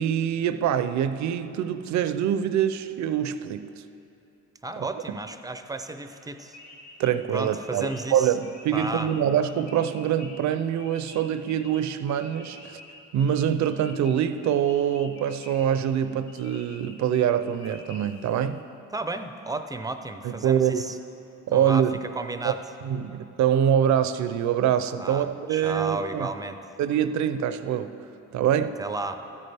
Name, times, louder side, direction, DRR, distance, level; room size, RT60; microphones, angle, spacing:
voice 1, 0.0-3.7 5.1-5.2 7.0-12.8 13.1-18.6 20.2-20.8 21.5-22.0 22.4-22.5 22.8-26.3 26.8-28.0 28.3-28.8, right 9 dB, 65° right, 12 dB, 0.5 m, -25 dB
voice 2, 4.6-6.6 7.3-8.4 8.7-9.1 18.9-21.0 21.5-22.6 25.0-26.6 28.8-29.2, right 2 dB, 10° right, 8 dB, 0.5 m, -33 dB
sound 1, 5.8-18.6, left 3 dB, 65° left, 1.3 m, -49 dB
13.0 x 8.5 x 3.4 m, 3.0 s
cardioid pair, 90°, 30 cm